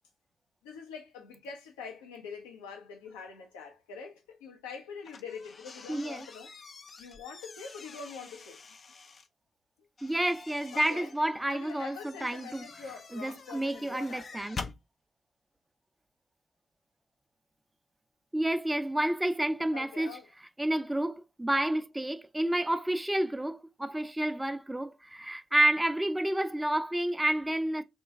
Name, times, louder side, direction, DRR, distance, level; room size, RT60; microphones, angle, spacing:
voice 1, 0.6-6.5 7.0-8.6 10.7-11.1 11.5-14.4 19.7-20.3, left 5 dB, 85° left, 0.7 m, -44 dB
sound 1, 5.0-9.3 10.0-14.8, left 4 dB, 50° left, 0.4 m, -47 dB
voice 2, 5.9-6.3 10.0-12.6 13.1-14.6 18.3-20.2 20.6-27.8, right 1 dB, 10° right, 0.4 m, -30 dB
3.0 x 2.2 x 3.4 m
hypercardioid pair, 45°, 0 cm